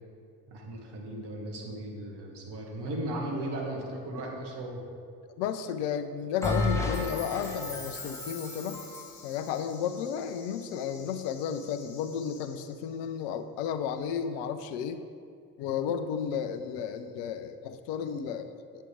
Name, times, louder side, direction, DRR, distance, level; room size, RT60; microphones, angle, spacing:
voice 1, 0.5-4.8, right 1 dB, 55° right, 0 dB, 1.7 m, -36 dB
voice 2, 5.4-8.8 9.2-15.0 15.6-18.8, left 8 dB, 60° left, 10 dB, 0.6 m, -33 dB
Bell, 6.4-9.2, left 1 dB, 5° left, 1.1 m, -32 dB
sound 1, 6.5-13.2, left 5 dB, 45° left, 1.2 m, -53 dB
8.2 x 6.6 x 3.7 m, 2.3 s
figure-of-eight pair, 45°, 49 cm